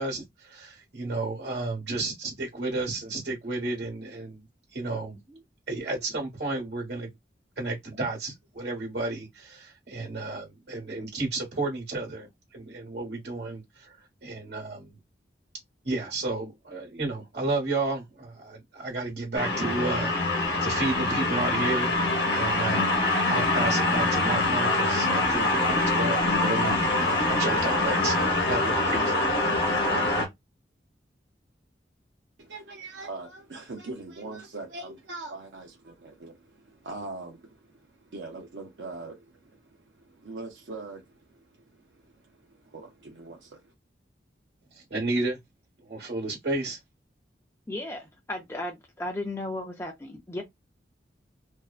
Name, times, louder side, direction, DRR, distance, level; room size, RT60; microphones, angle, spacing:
voice 1, 0.0-4.4 4.7-5.4 5.7-7.1 7.6-13.9 14.2-14.9 15.8-21.9 22.3-23.0 23.3-26.8 27.3-29.1 44.7-45.4 45.8-46.8, right 2 dB, 65° right, 1.2 m, -32 dB
sound 1, 19.4-30.3, left 2 dB, 60° left, 0.9 m, -24 dB
voice 2, 32.4-43.7, right 3 dB, 80° right, 0.6 m, -42 dB
voice 3, 47.7-50.4, left 1 dB, 15° left, 0.4 m, -35 dB
2.5 x 2.1 x 2.4 m
head